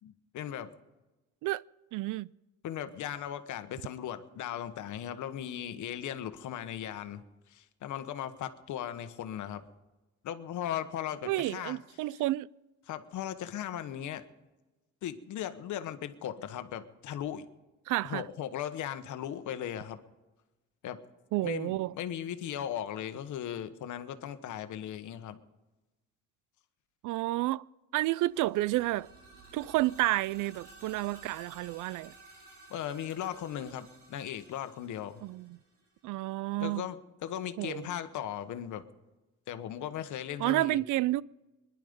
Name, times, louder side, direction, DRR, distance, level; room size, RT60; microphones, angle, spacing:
voice 1, 0.0-0.7 2.6-7.2 7.5-9.6 10.2-11.8 12.9-14.2 15.0-17.5 18.0-20.0 20.8-21.0 21.4-25.4 32.7-35.2 36.6-38.8 39.5-40.8, left 10 dB, 75° left, 1.2 m, -37 dB
voice 2, 1.9-2.3 11.2-12.5 17.9-18.2 21.3-21.9 27.0-27.6 27.9-29.1 29.5-32.1 35.2-35.6 36.0-36.8 37.6-37.9 40.4-41.2, right 17 dB, 85° right, 0.5 m, -30 dB
sound 1, 28.2-36.0, right 2 dB, 50° right, 6.3 m, -55 dB
21.5 x 11.0 x 5.2 m
cardioid pair, 90°, 30 cm